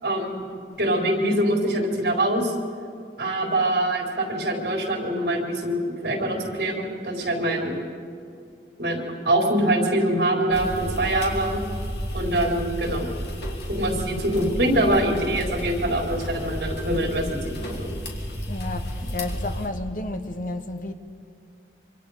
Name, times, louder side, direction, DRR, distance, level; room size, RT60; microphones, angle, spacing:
voice 1, 0.0-0.5 0.8-2.5 3.2-7.8 8.8-9.0 9.2-11.6 12.1-13.1 13.7-17.9, right 1 dB, 65° right, 4.2 m, -24 dB
sound 1, 10.5-19.7, equal, 75° left, 3.1 m, -32 dB
voice 2, 18.5-20.9, left 2 dB, 45° left, 1.3 m, -32 dB
26.5 x 25.0 x 5.1 m
head